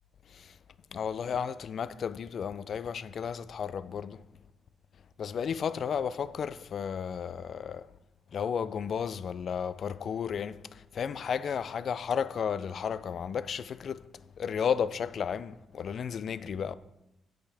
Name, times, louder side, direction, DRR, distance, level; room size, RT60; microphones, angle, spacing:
voice 1, 0.9-4.2 5.2-7.9 8.3-14.1 14.4-16.7, left 7 dB, 55° left, 0.4 m, -33 dB
15.0 x 5.7 x 3.5 m
cardioid pair, 90°, 0 cm